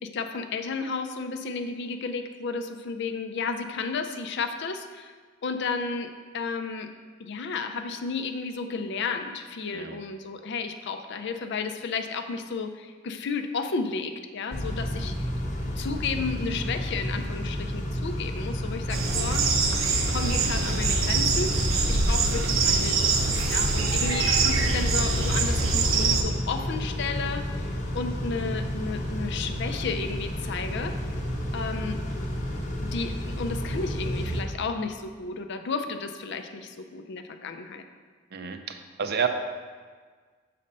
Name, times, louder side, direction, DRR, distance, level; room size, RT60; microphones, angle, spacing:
voice 1, 0.0-5.1 5.4-6.9 7.2-15.1 15.6-19.5 19.9-21.5 21.9-23.1 23.5-30.9 31.5-32.0 32.9-37.8, left 4 dB, 60° left, 7 dB, 0.5 m, -33 dB
Car / Idling / Accelerating revving vroom, 14.5-34.4, equal, 35° left, 0.8 m, -31 dB
sound 1, 18.9-26.2, right 3 dB, 80° right, 0.8 m, -24 dB
voice 2, 38.3-39.3, right 7 dB, 50° right, 7 dB, 0.5 m, -30 dB
6.5 x 4.2 x 5.3 m, 1.5 s
head